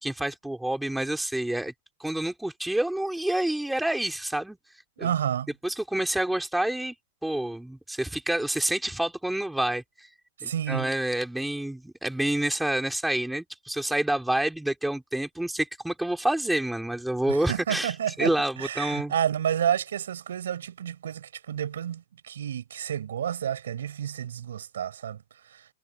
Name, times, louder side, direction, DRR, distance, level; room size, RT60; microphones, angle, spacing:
voice 1, 0.0-1.7 2.0-4.6 5.0-5.1 5.6-6.9 7.2-10.1 10.4-19.1, right 1 dB, 5° right, 3.7 m, -28 dB
voice 2, 5.0-5.5 10.4-10.9 17.3-18.3 18.6-25.7, right 9 dB, 90° right, 7.2 m, -30 dB
supercardioid pair, 150°, 0 cm